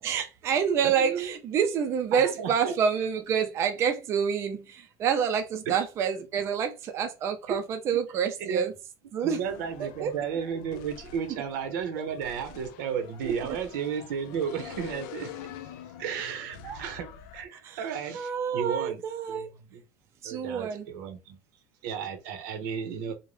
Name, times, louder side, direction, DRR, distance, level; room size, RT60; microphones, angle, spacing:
voice 1, 0.0-8.7 9.1-9.4 9.8-10.1 11.9-12.0 13.2-13.3 16.6-16.8 17.6-17.8 18.1-19.5 20.2-20.8, right 7 dB, 25° right, 0.4 m, -28 dB
voice 2, 0.8-1.3 2.1-2.7 5.7-5.8 7.5-7.6 8.4-8.7 9.2-15.5 16.0-19.0 19.3-19.4 19.7-19.8 20.2-21.4 21.8-23.1, right 7 dB, 85° right, 0.8 m, -33 dB
sound 1, 9.4-17.5, left 9 dB, 80° left, 0.4 m, -46 dB
2.6 x 2.1 x 3.2 m
cardioid pair, 170°, 10 cm